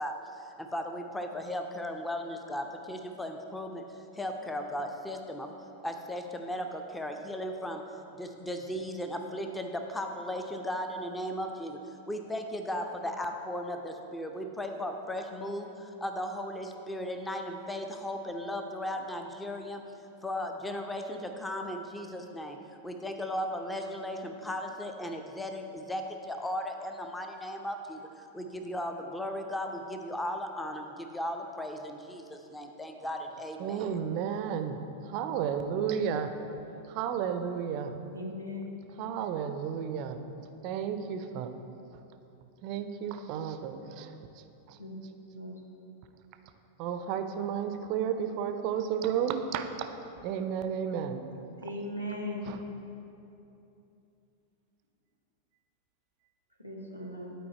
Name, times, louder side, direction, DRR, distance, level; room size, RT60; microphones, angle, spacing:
voice 1, 0.0-3.8 4.1-5.5 5.8-7.8 8.2-19.8 20.2-22.6 22.8-33.8, left 1 dB, 10° left, 5 dB, 0.6 m, -36 dB
voice 2, 33.6-36.3 36.8-38.0 39.0-40.2 40.6-41.5 41.9-42.0 42.6-44.8 46.8-49.9 50.2-51.3 52.4-52.6, right 8 dB, 45° right, 8 dB, 0.5 m, -33 dB
voice 3, 38.1-38.7 44.8-45.0 45.3-45.6 51.6-52.5 56.6-57.3, left 1 dB, 85° left, -1 dB, 1.0 m, -38 dB
11.0 x 4.5 x 4.2 m, 2.9 s
figure-of-eight pair, 90°, 0 cm